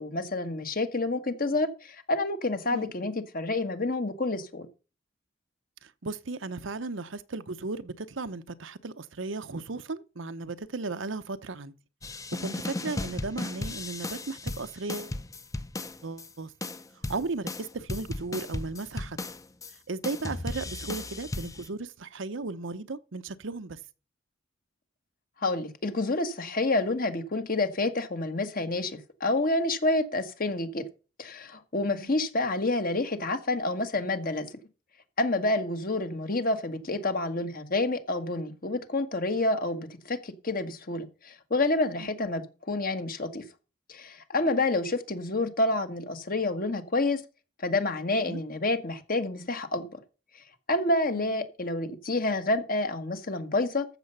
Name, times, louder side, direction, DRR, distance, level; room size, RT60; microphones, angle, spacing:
voice 1, 0.0-4.7 25.4-30.8 31.2-34.5 35.2-43.4 43.9-47.2 47.6-50.0 50.7-53.9, left 2 dB, 50° left, 1.5 m, -28 dB
voice 2, 5.8-11.7 12.4-15.2 16.0-16.5 17.1-19.2 19.9-23.8 31.9-32.2 42.0-42.1 48.3-48.4 51.1-51.3, right 3 dB, 85° right, 0.9 m, -36 dB
sound 1, 12.0-16.3 16.6-19.7 20.0-21.7, left 2 dB, 15° left, 0.7 m, -36 dB
14.0 x 6.9 x 5.5 m
head